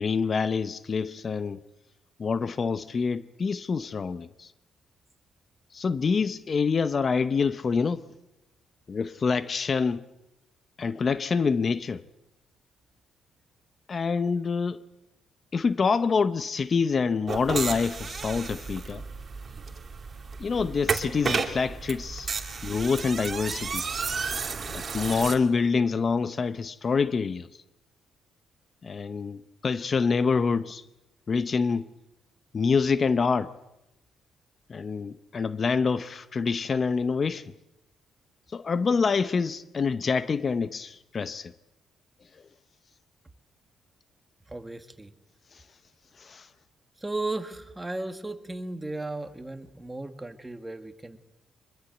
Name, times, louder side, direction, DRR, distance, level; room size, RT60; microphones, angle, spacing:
voice 1, 0.0-1.6 2.2-4.5 5.7-8.0 8.9-10.0 10.8-12.0 13.9-14.8 15.5-19.0 20.4-22.3 22.6-23.8 24.7-27.5 28.8-30.8 31.3-31.9 32.5-33.5 34.7-37.5 38.5-41.5 45.5-45.6 46.2-46.5, left 5 dB, 40° left, 0.8 m, -26 dB
sound 1, 17.3-25.3, right 5 dB, 40° right, 2.7 m, -32 dB
voice 2, 44.5-45.1 47.0-51.2, right 2 dB, 15° right, 1.9 m, -35 dB
24.5 x 21.5 x 8.1 m
cardioid pair, 90°, 0 cm